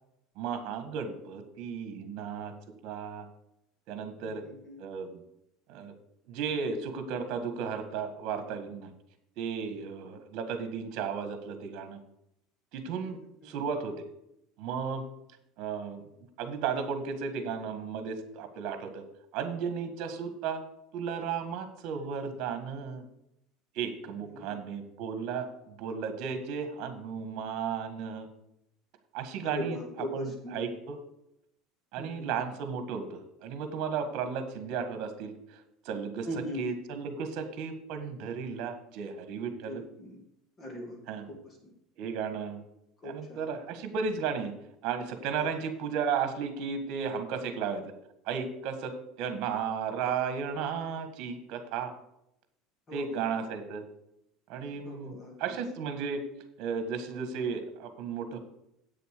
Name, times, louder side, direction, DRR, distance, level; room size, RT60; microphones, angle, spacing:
voice 1, 0.4-2.5 2.8-3.2 3.9-4.4 4.8-5.2 5.7-5.9 6.3-8.9 9.4-12.0 12.7-13.2 13.4-13.9 14.6-15.0 15.6-16.1 16.4-19.0 19.3-20.6 20.9-23.0 23.7-28.3 29.1-29.8 30.1-31.0 31.9-36.3 36.6-39.8 41.1-41.2 42.0-42.6 43.0-44.5 44.8-47.9 48.2-51.9 52.9-53.8 54.5-56.2 56.6-58.4, right 6 dB, 55° right, 8 dB, 1.7 m, -34 dB
voice 2, 4.2-4.8 13.0-13.1 13.4-13.5 24.2-24.6 29.4-30.6 32.0-32.5 36.2-36.6 39.7-40.2 40.6-41.0 41.3-41.6 43.0-43.4 45.4-45.5 52.9-53.2 54.8-55.6, equal, 25° left, 1 dB, 2.4 m, -40 dB
8.5 x 6.9 x 6.7 m, 0.79 s
cardioid pair, 150°, 0 cm